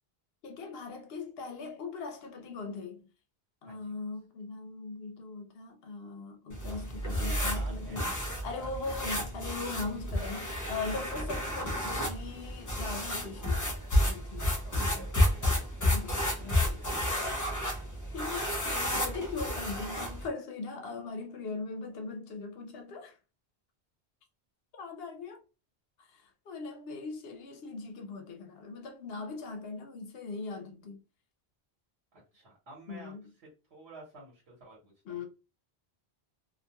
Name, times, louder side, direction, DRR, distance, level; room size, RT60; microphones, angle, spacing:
voice 1, 0.4-3.1 3.6-8.1 8.4-13.7 14.0-14.5 14.8-15.1 15.9-16.8 18.1-23.2 24.7-25.4 26.0-31.0 32.9-33.3 35.1-35.3, left 4 dB, 70° left, 0.8 m, -40 dB
sound 1, 6.5-20.3, left 1 dB, 30° left, 0.4 m, -31 dB
voice 2, 7.1-9.2 14.4-17.7 32.1-33.2 33.4-35.2, right 2 dB, 70° right, 1.2 m, -52 dB
2.4 x 2.2 x 2.8 m
omnidirectional pair, 1.1 m